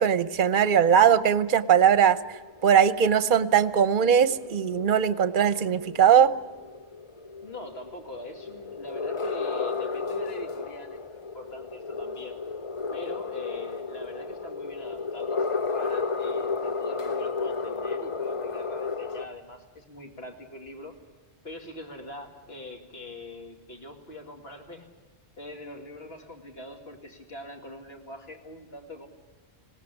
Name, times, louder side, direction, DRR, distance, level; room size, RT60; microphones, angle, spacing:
voice 1, 0.0-2.2 2.6-6.3, right 8 dB, 50° right, 15 dB, 0.9 m, -20 dB
sound 1, 1.9-19.3, left 4 dB, 35° left, 0.7 m, -33 dB
voice 2, 7.4-11.0 11.3-12.4 12.9-21.0 21.4-24.9 25.4-29.1, left 1 dB, 65° left, 3 dB, 2.6 m, -43 dB
20.0 x 17.5 x 9.8 m, 1.4 s
omnidirectional pair, 1.1 m